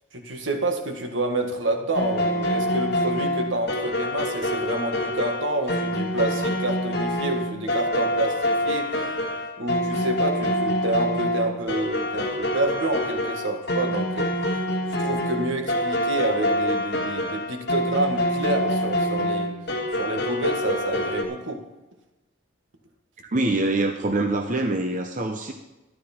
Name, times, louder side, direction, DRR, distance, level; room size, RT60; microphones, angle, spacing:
voice 1, 0.1-9.2 9.6-14.3 15.0-19.5 19.9-21.6, right 2 dB, 70° right, 4 dB, 1.7 m, -28 dB
sound 1, 1.9-21.2, left 1 dB, 55° left, 1.7 m, -26 dB
voice 2, 23.3-25.5, right 2 dB, 40° right, 4 dB, 0.8 m, -24 dB
13.5 x 11.0 x 4.4 m, 1.0 s
head